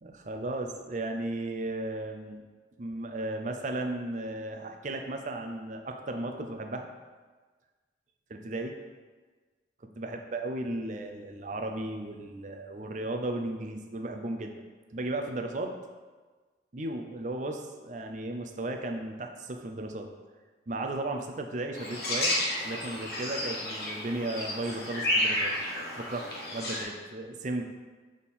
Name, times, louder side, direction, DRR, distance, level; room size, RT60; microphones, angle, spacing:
voice 1, 0.0-2.4 2.8-6.9 8.3-8.8 10.0-14.5 14.9-15.7 16.7-20.1 20.7-22.3 22.6-25.5 25.9-27.6, right 2 dB, 45° right, 4 dB, 0.5 m, -35 dB
sound 1, 21.7-26.8, left 1 dB, 60° left, 1.3 m, -31 dB
6.4 x 3.6 x 4.2 m, 1.4 s
head